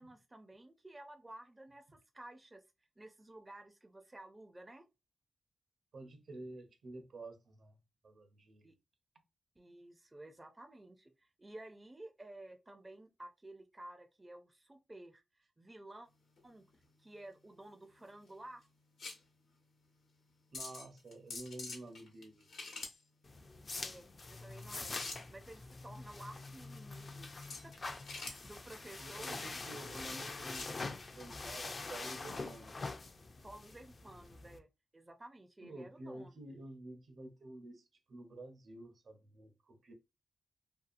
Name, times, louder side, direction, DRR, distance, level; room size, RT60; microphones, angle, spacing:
voice 1, 0.0-2.6 3.0-4.9 8.6-8.7 9.6-16.1 16.4-16.7 17.0-18.7 23.8-27.3 27.6-29.6 33.4-36.3, right 1 dB, 20° right, 0.4 m, -53 dB
voice 2, 5.9-7.8 8.0-8.7 20.5-22.5 29.0-33.0 35.6-39.9, right 2 dB, 70° right, 0.7 m, -50 dB
sound 1, 16.1-30.8, left 3 dB, 80° left, 0.9 m, -50 dB
sound 2, 23.2-34.6, left 3 dB, 40° left, 0.4 m, -45 dB
2.7 x 2.3 x 2.5 m
cardioid pair, 70°, 0 cm